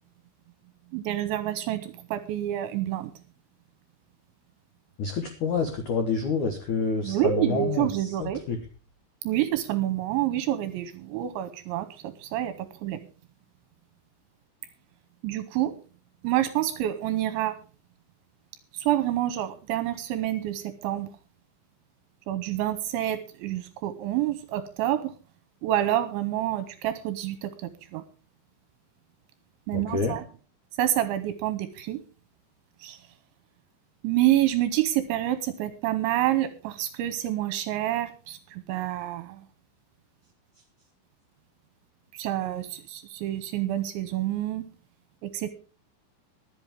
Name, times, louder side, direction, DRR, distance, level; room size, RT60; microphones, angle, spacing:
voice 1, 0.9-3.1 7.0-8.4 9.2-11.9 12.2-13.0 15.2-15.8 16.2-17.5 18.7-21.1 22.3-25.1 25.6-28.0 29.7-30.2 30.8-32.0 32.8-33.0 34.0-39.4 42.2-44.6 45.2-45.5, right 13 dB, 80° right, 12 dB, 2.9 m, -28 dB
voice 2, 5.0-7.9 8.2-8.6 29.7-30.1, left 4 dB, 85° left, 4 dB, 1.7 m, -28 dB
23.0 x 7.9 x 3.6 m, 0.36 s
omnidirectional pair, 5.8 m